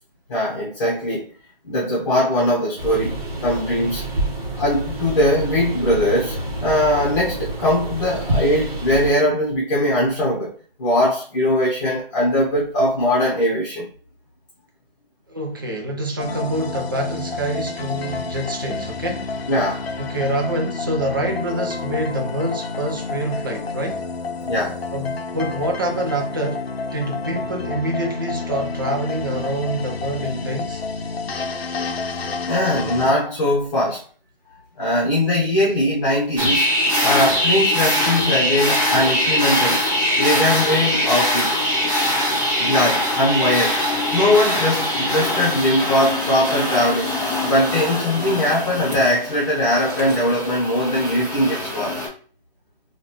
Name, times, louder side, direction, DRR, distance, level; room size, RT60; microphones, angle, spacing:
voice 1, 0.3-1.3 1.6-4.1 4.6-10.5 10.8-13.9 19.5-19.9 24.4-24.8 32.5-34.0 34.8-36.7 37.0-39.8 40.2-41.6 42.6-43.8 44.1-47.1 47.4-52.0, left 1 dB, 30° left, 0.9 m, -20 dB
sound 1, 2.8-9.2, right 1 dB, 40° right, 1.1 m, -28 dB
voice 2, 15.3-19.3 20.0-24.0 24.9-26.6 26.9-30.8 42.0-42.2, right 1 dB, 25° right, 0.4 m, -26 dB
sound 2, 16.2-33.1, left 4 dB, 85° left, 0.7 m, -29 dB
sound 3, 36.4-52.1, left 1 dB, 5° right, 1.0 m, -22 dB
3.9 x 2.4 x 2.9 m
hypercardioid pair, 160°, 30 cm